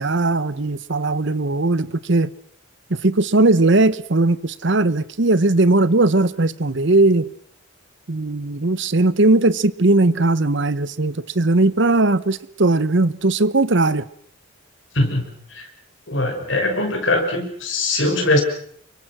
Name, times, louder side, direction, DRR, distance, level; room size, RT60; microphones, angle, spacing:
voice 1, 0.0-2.3 2.9-7.3 8.1-14.1, right 2 dB, 60° right, 0.9 m, -18 dB
voice 2, 16.1-18.4, left 2 dB, 65° left, 5.9 m, -21 dB
29.0 x 24.0 x 6.1 m
head